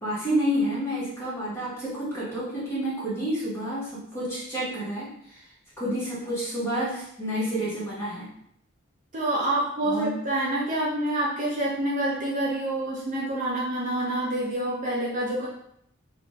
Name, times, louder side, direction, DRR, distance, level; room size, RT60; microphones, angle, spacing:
voice 1, 0.0-5.4 5.8-8.3 9.8-10.2, equal, 15° left, -9 dB, 1.3 m, -29 dB
voice 2, 9.1-15.5, right 1 dB, 40° right, -5 dB, 0.5 m, -27 dB
2.5 x 2.4 x 3.1 m, 0.70 s
head